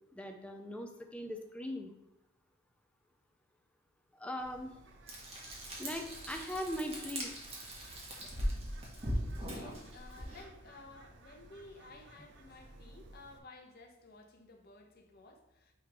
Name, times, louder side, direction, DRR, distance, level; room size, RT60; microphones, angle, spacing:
voice 1, 0.1-1.9 4.1-4.8 5.8-7.3, left 1 dB, 5° left, 0.5 m, -40 dB
Bird, 4.4-13.4, right 2 dB, 60° right, 0.7 m, -57 dB
Frying (food), 5.1-10.4, equal, 30° right, 1.4 m, -40 dB
voice 2, 9.4-15.7, left 2 dB, 45° left, 1.1 m, -55 dB
9.3 x 3.7 x 3.1 m
head